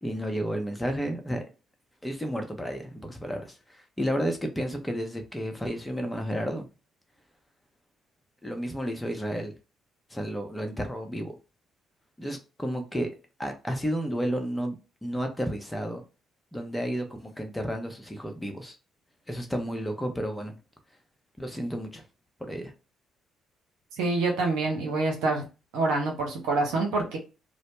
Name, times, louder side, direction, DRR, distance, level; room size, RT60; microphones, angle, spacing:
voice 1, 0.0-1.4 2.0-6.7 8.4-9.5 10.1-11.3 12.2-13.1 13.4-14.8 15.0-16.0 16.5-18.8 19.3-20.6 21.4-22.0 22.4-22.7, equal, 10° left, 0.7 m, -32 dB
voice 2, 24.0-25.4 25.7-27.2, right 3 dB, 75° right, 0.7 m, -26 dB
2.0 x 2.0 x 3.0 m
hypercardioid pair, 50°, 0 cm